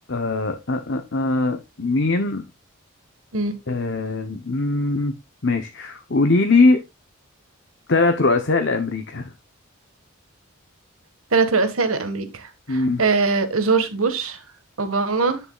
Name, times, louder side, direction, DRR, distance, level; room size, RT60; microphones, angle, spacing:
voice 1, 0.1-2.5 3.7-5.2 5.4-6.8 7.9-9.3 12.7-13.0, left 3 dB, 55° left, 0.8 m, -21 dB
voice 2, 11.3-14.4 14.8-15.4, right 4 dB, 90° right, 1.7 m, -22 dB
10.0 x 6.8 x 2.4 m
head